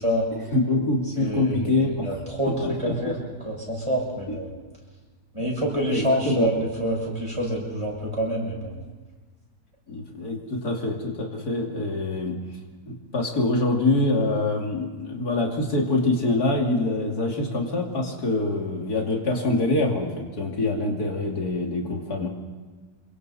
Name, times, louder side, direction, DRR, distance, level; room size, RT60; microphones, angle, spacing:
voice 1, 0.3-2.1 2.5-2.9 4.3-4.4 5.9-6.5 9.9-12.3 12.9-22.3, left 2 dB, 85° left, 0 dB, 3.2 m, -25 dB
voice 2, 1.2-3.1 3.4-4.5 5.3-8.8, equal, 20° right, -3 dB, 6.9 m, -27 dB
28.5 x 22.5 x 4.2 m, 1.4 s
omnidirectional pair, 1.6 m